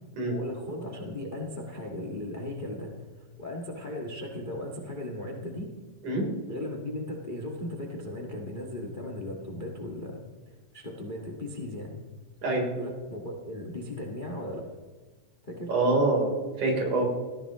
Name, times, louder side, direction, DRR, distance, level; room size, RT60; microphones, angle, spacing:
voice 1, 0.3-2.9 3.4-5.7 6.5-10.2 10.7-12.0 12.7-14.6 15.5-15.7, left 1 dB, 25° left, 1 dB, 1.0 m, -37 dB
voice 2, 15.7-16.3 16.6-17.1, right 2 dB, 70° right, -1 dB, 5.1 m, -25 dB
18.0 x 15.0 x 3.0 m, 1.3 s
omnidirectional pair, 3.7 m